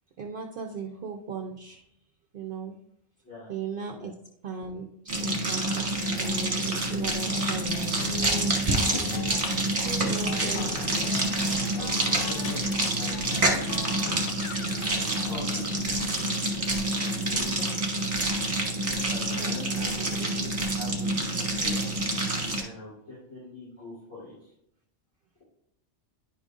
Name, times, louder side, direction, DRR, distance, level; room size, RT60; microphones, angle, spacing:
voice 1, 0.2-1.9 2.3-2.8 3.5-4.1 4.4-8.5 9.8-10.7 19.4-20.3, right 5 dB, 60° right, 3 dB, 0.7 m, -37 dB
sound 1, 5.1-22.6, right 1 dB, 30° right, 1.2 m, -27 dB
sound 2, 6.8-15.8, left 6 dB, 65° left, 0.7 m, -39 dB
voice 2, 11.7-13.6 14.9-17.7 18.8-21.9 22.5-24.5, left 1 dB, 85° left, -12 dB, 3.4 m, -44 dB
10.0 x 5.2 x 2.4 m, 0.75 s
omnidirectional pair, 1.2 m